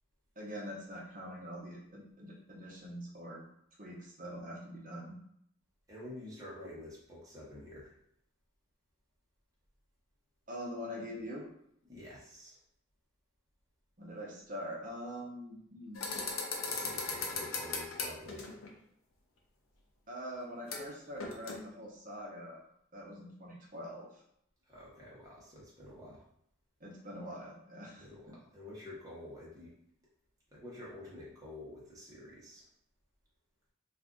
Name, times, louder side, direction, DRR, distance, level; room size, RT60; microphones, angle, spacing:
voice 1, 0.4-3.4 3.8-5.2 10.5-11.5 14.0-16.1 20.1-22.6 22.9-24.1 26.8-28.1, equal, 40° right, -3 dB, 0.7 m, -44 dB
voice 2, 5.9-7.9 11.9-12.6 16.7-18.5 24.7-26.2 28.0-29.7 30.5-32.6, left 1 dB, 15° right, -7 dB, 0.9 m, -49 dB
sound 1, 16.0-18.7 20.7-20.9 21.2-21.6, left 4 dB, 85° left, 0.6 m, -37 dB
2.5 x 2.5 x 3.6 m, 0.73 s
head